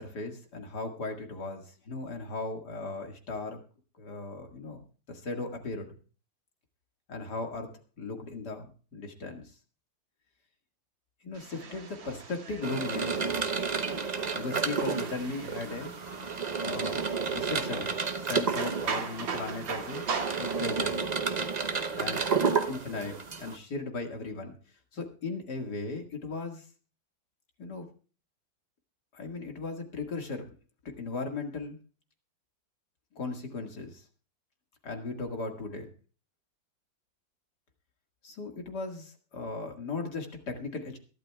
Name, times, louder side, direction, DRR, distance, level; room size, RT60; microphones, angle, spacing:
voice 1, 0.0-3.6 4.0-5.9 7.1-7.7 8.0-9.5 11.2-13.4 14.3-15.9 16.6-17.9 18.2-20.1 20.4-21.1 22.0-22.2 22.7-24.6 24.9-26.6 27.6-27.9 29.1-30.5 30.8-31.8 33.1-34.0 34.8-35.9 38.2-41.0, left 3 dB, 60° left, 3 dB, 2.5 m, -37 dB
sound 1, 11.3-20.8, right 5 dB, 80° right, 2.5 m, -40 dB
sound 2, 12.6-23.6, right 5 dB, 55° right, 0.4 m, -31 dB
22.0 x 12.0 x 2.3 m, 0.37 s
omnidirectional pair, 2.0 m